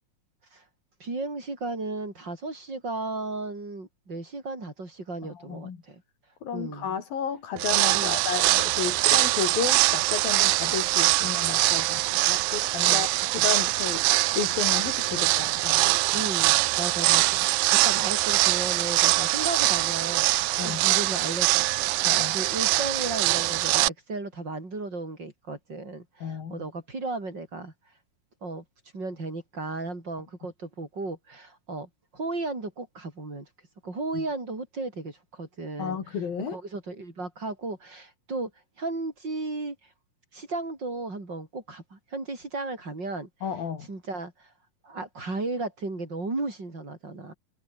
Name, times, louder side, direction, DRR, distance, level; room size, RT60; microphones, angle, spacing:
voice 1, 1.0-6.0 6.5-6.9 7.9-8.2 12.9-13.0 16.1-17.5 17.8-21.9 22.3-27.7 28.4-28.6 28.9-33.5 33.8-36.0 36.5-38.5 38.8-39.8 40.3-43.3 43.9-44.5 44.8-47.3, right 3 dB, 30° right, 6.4 m, -35 dB
voice 2, 5.3-5.8 6.4-16.3 20.6-20.8 22.0-22.4 26.2-26.7 34.1-34.2 35.8-36.6 43.4-43.9, left 7 dB, 80° left, 5.3 m, -33 dB
sound 1, 7.6-23.9, right 19 dB, 80° right, 1.8 m, -23 dB
omnidirectional pair, 4.0 m